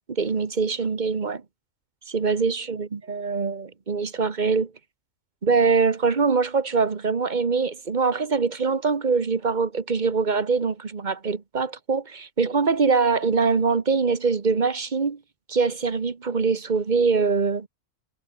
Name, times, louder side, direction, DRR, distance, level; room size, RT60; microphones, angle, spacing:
voice 1, 0.1-1.4 2.1-4.7 5.4-15.2 15.5-17.7, right 4 dB, 35° right, 1.3 m, -23 dB
omnidirectional pair, 1.4 m